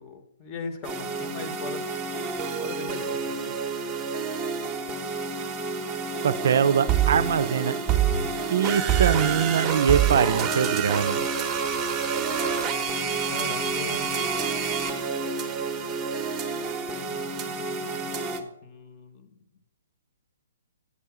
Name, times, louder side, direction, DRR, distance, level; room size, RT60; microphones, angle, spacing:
voice 1, 0.0-1.8 2.6-3.6 13.3-14.2 16.8-19.4, left 4 dB, 25° left, 7 dB, 0.9 m, -40 dB
sound 1, 0.8-18.4, right 6 dB, 15° right, 0.8 m, -28 dB
voice 2, 6.2-7.8 8.5-11.3, right 8 dB, 60° right, 14 dB, 0.4 m, -23 dB
8.4 x 5.5 x 4.8 m, 0.79 s
hypercardioid pair, 155°, 0 cm